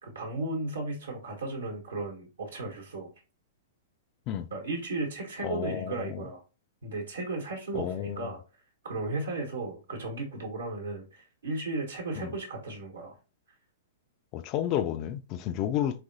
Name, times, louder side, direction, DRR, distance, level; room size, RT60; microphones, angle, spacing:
voice 1, 0.0-3.1 4.5-6.4 6.8-8.4 8.8-13.1, right 2 dB, 80° right, 1.1 m, -35 dB
voice 2, 5.4-6.2 7.7-8.3 12.2-12.3 14.3-16.0, left 10 dB, 35° left, 0.4 m, -31 dB
3.5 x 3.3 x 2.6 m
hypercardioid pair, 110°, 0 cm